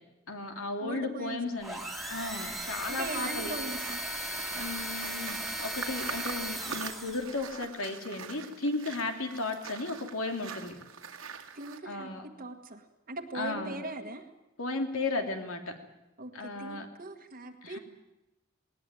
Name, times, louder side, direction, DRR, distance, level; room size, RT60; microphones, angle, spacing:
voice 1, 0.3-1.8 2.1-3.5 4.5-10.7 11.8-12.2 13.3-13.8 14.6-15.6 16.3-16.9 17.6-17.8, left 2 dB, 80° left, 4 dB, 3.0 m, -35 dB
voice 2, 0.8-1.6 2.9-4.0 11.5-12.1 12.4-14.2 16.2-17.8, right 2 dB, 45° right, 3 dB, 1.6 m, -40 dB
sound 1, 1.6-7.4, right 1 dB, ahead, 2.2 m, -37 dB
sound 2, 1.7-11.8, right 6 dB, 80° right, 2.1 m, -44 dB
20.0 x 19.0 x 9.0 m, 1.0 s
head